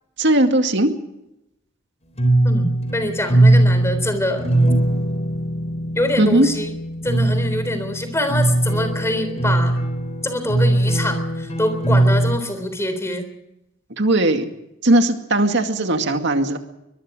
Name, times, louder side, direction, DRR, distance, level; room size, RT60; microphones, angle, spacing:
voice 1, 0.2-0.9 6.2-6.5 14.0-14.5 14.8-16.6, right 1 dB, 60° right, 6 dB, 2.2 m, -18 dB
sound 1, 2.2-12.4, right 1 dB, 35° left, 3.8 m, -20 dB
voice 2, 2.4-4.5 6.0-6.7 7.0-9.8 10.2-13.2, left 1 dB, 15° left, 9 dB, 3.7 m, -24 dB
23.5 x 22.5 x 5.0 m, 0.86 s
head